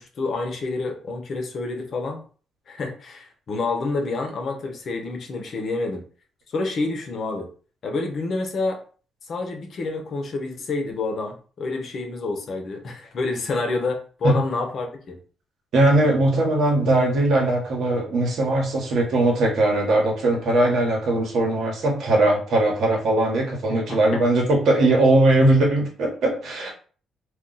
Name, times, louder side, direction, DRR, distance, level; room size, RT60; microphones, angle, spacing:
voice 1, 0.0-2.2 2.7-6.0 6.5-7.5 7.8-8.8 9.3-15.2 23.9-24.2, left 3 dB, 55° left, 4 dB, 0.8 m, -28 dB
voice 2, 15.7-26.7, right 2 dB, 70° right, 0 dB, 1.2 m, -20 dB
2.4 x 2.3 x 3.9 m, 0.40 s
cardioid pair, 90°, 0 cm